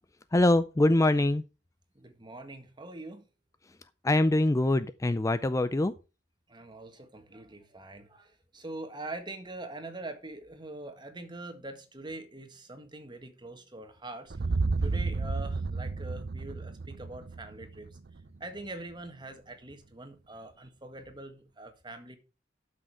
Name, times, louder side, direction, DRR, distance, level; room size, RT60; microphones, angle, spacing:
voice 1, 0.3-1.4 4.0-5.9, left 1 dB, 15° left, 0.4 m, -24 dB
voice 2, 1.9-3.3 6.5-14.5 14.8-18.0 18.4-22.2, right 2 dB, 25° right, 1.7 m, -43 dB
sound 1, 14.3-18.4, right 3 dB, 60° right, 0.6 m, -32 dB
12.0 x 6.4 x 4.8 m
head